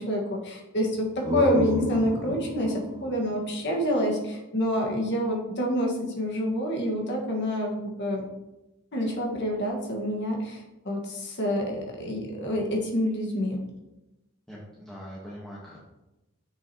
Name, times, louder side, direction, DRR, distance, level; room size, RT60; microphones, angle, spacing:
voice 1, 0.0-8.2 8.9-13.6, equal, 50° left, -1 dB, 1.5 m, -27 dB
sound 1, 0.9-4.6, equal, 20° right, 0.6 m, -32 dB
voice 2, 14.5-15.8, equal, 5° left, -6 dB, 1.1 m, -42 dB
7.5 x 6.1 x 2.9 m, 0.99 s
head